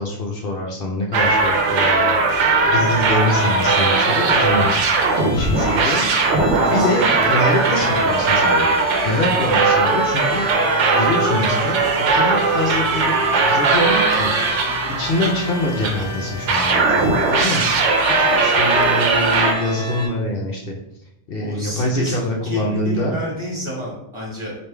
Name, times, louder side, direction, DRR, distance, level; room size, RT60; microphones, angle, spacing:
voice 1, 0.0-10.4 10.9-13.1 13.4-14.6 15.0-17.9 18.2-20.8 21.3-23.2, left 1 dB, 60° left, 0 dB, 0.8 m, -25 dB
sound 1, 1.1-16.0 16.5-19.5, right 3 dB, 85° right, 1.0 m, -18 dB
sound 2, 3.3-20.1, equal, 20° left, 1.6 m, -31 dB
voice 2, 6.6-7.0 21.4-24.5, equal, 25° right, -5 dB, 1.3 m, -30 dB
3.4 x 2.5 x 4.4 m, 0.82 s
omnidirectional pair, 1.2 m